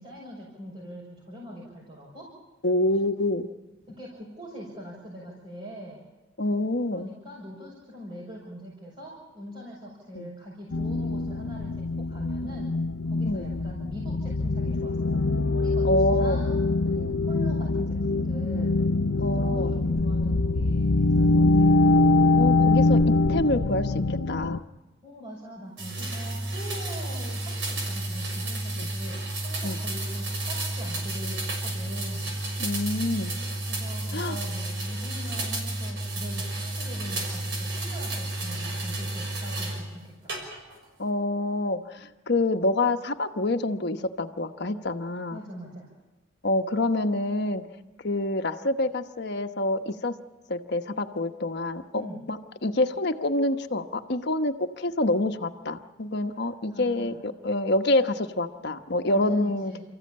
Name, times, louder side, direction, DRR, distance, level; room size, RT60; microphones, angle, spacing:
voice 1, 0.0-2.4 3.9-6.0 6.9-12.7 13.0-15.2 15.5-16.6 16.8-18.8 19.1-21.7 25.0-32.3 33.7-40.4 45.3-45.9 51.9-52.2 56.3-56.4 56.7-57.2 59.1-59.8, equal, 30° right, -6 dB, 6.1 m, -42 dB
voice 2, 2.6-3.5 6.4-7.1 10.1-10.3 13.3-13.5 15.8-16.4 19.2-19.8 22.4-24.6 28.8-28.9 29.6-29.8 32.6-33.3 34.1-34.4 41.0-45.4 46.4-47.6 48.0-50.1 50.5-59.7, left 2 dB, 55° left, 6 dB, 1.1 m, -27 dB
sound 1, 10.7-24.6, left 2 dB, 90° left, 0.8 m, -23 dB
sound 2, 25.8-39.8 40.3-40.8, right 2 dB, 60° right, 6.2 m, -31 dB
30.0 x 15.0 x 8.7 m, 1.1 s
head